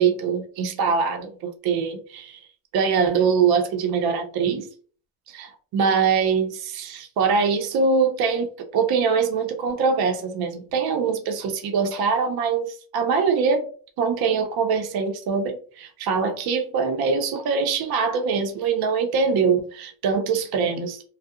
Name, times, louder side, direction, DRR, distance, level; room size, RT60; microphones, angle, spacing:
voice 1, 0.0-2.4 2.7-4.7 5.3-13.7 14.0-21.0, right 5 dB, 50° right, 0.5 m, -23 dB
2.6 x 2.0 x 2.3 m
cardioid pair, 165°, 49 cm